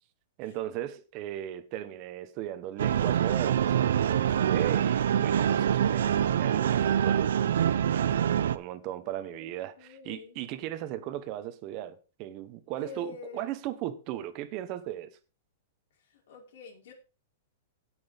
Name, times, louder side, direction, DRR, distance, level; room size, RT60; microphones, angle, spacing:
voice 1, 0.4-7.3 8.5-15.2, right 13 dB, 35° right, 1.1 m, -37 dB
sound 1, 2.8-8.6, right 9 dB, 85° right, 0.7 m, -25 dB
voice 2, 9.8-10.4 12.8-13.6 16.0-16.9, left 4 dB, 65° left, 4.9 m, -46 dB
17.5 x 6.2 x 3.6 m
supercardioid pair, 165°, 0 cm